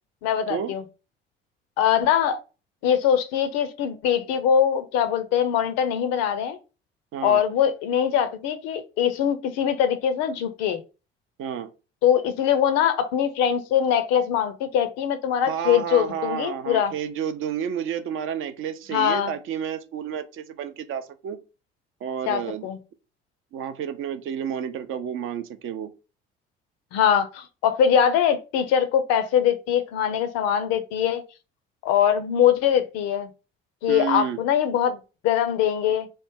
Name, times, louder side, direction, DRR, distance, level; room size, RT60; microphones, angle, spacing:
voice 1, 0.2-0.8 1.8-2.4 2.8-6.6 7.2-10.8 12.0-16.9 18.9-19.3 22.3-22.8 26.9-31.2 31.8-33.3 33.8-35.0 35.2-36.1, left 9 dB, 60° left, 0.6 m, -22 dB
voice 2, 7.1-7.4 11.4-11.7 15.4-21.4 22.0-22.7 23.5-25.9 33.9-34.4, right 8 dB, 45° right, 0.5 m, -30 dB
3.1 x 2.1 x 3.5 m
figure-of-eight pair, 55°, 30 cm